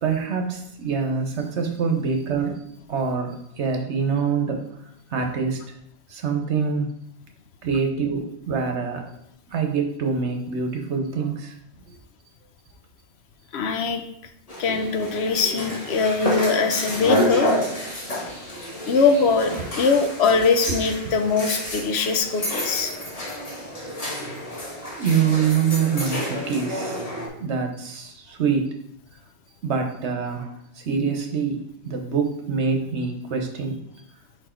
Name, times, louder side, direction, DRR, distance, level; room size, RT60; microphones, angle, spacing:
voice 1, 0.0-2.6 2.9-4.6 5.1-5.6 6.1-6.9 7.6-9.1 9.5-11.5 11.9-12.0 24.9-27.0 27.4-28.7 29.6-30.5 30.8-33.8, right 5 dB, 75° right, 4 dB, 1.2 m, -25 dB
voice 2, 13.5-14.0 14.6-17.5 18.9-22.9, left 4 dB, 70° left, 7 dB, 0.9 m, -22 dB
sound 1, 14.5-27.3, equal, 35° left, 1.3 m, -29 dB
4.9 x 4.5 x 4.4 m, 0.74 s
omnidirectional pair, 1.2 m